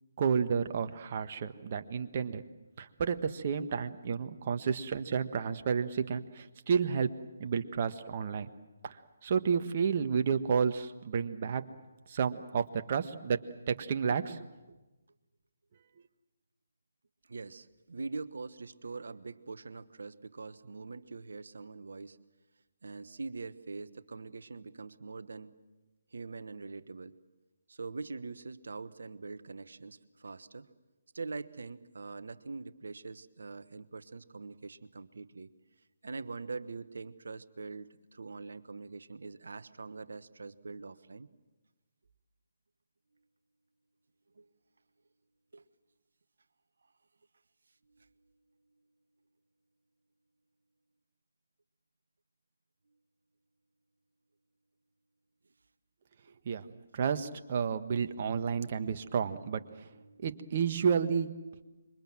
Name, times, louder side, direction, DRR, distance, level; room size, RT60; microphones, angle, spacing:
voice 1, 0.2-2.4 2.8-7.1 7.4-8.5 8.8-11.6 12.1-13.4 13.7-14.4 56.4-56.7 56.9-59.9 60.2-61.3, right 6 dB, 40° right, 8 dB, 1.5 m, -31 dB
voice 2, 17.3-22.2 22.8-25.6 26.1-27.2 27.7-30.7 31.1-35.5 36.0-41.3 44.3-44.5 45.5-45.6 47.9-48.1 59.9-60.2, right 4 dB, 70° right, 13 dB, 1.2 m, -43 dB
27.0 x 23.5 x 7.6 m, 1.1 s
figure-of-eight pair, 145°, 0 cm